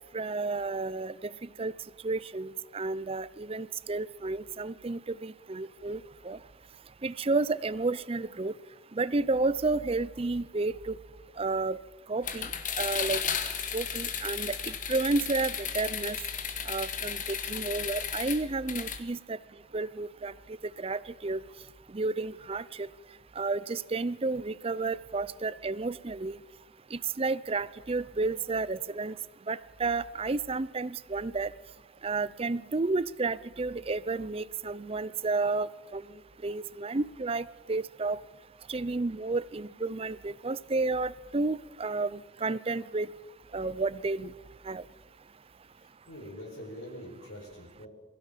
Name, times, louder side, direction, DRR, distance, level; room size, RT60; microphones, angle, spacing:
voice 1, 0.1-1.3 1.6-1.7 2.0-6.4 7.0-8.5 8.9-10.9 11.4-11.8 12.1-12.5 12.8-13.2 13.7-16.2 16.7-19.4 19.7-20.3 20.8-21.4 21.9-22.9 23.4-26.4 26.9-29.1 29.5-31.5 32.0-36.0 36.4-38.2 38.7-43.1 43.5-44.3 44.7-44.8, right 3 dB, 30° right, 19 dB, 0.5 m, -31 dB
sound 1, 12.2-19.0, left 7 dB, 40° left, 1.8 m, -34 dB
voice 2, 45.7-47.9, equal, 80° left, -2 dB, 4.8 m, -44 dB
22.5 x 16.0 x 7.4 m, 1.3 s
head